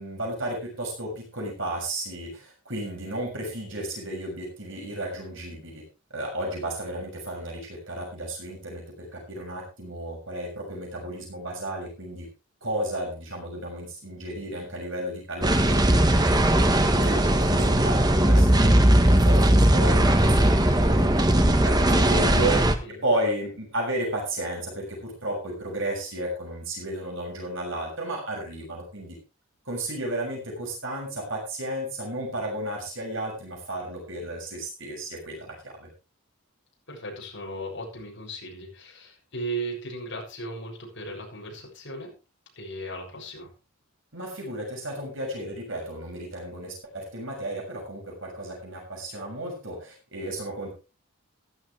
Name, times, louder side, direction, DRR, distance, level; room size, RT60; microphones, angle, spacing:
voice 1, 0.0-5.8 6.1-12.3 12.6-16.4 16.8-18.7 19.0-29.2 29.6-35.9 44.1-50.7, right 1 dB, 60° right, -1 dB, 6.7 m, -33 dB
sound 1, 15.4-22.7, right 1 dB, 20° right, 1.2 m, -19 dB
voice 2, 36.9-42.1 42.5-43.5, right 2 dB, 55° left, -1 dB, 7.0 m, -36 dB
15.0 x 13.0 x 3.3 m, 0.30 s
head